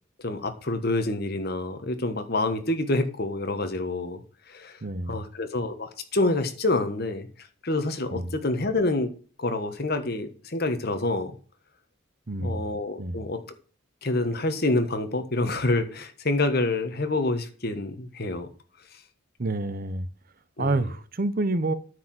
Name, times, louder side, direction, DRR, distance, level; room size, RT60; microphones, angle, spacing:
voice 1, 0.2-4.2 4.5-4.8 5.1-7.3 7.6-9.1 9.4-11.3 12.4-13.4 14.0-18.5 20.6-20.8, left 2 dB, 50° left, 1.4 m, -27 dB
voice 2, 4.8-5.2 8.1-8.3 12.3-12.6 13.0-13.2 19.4-20.1 20.6-21.7, right 2 dB, 45° right, 0.7 m, -28 dB
9.5 x 4.8 x 7.6 m
head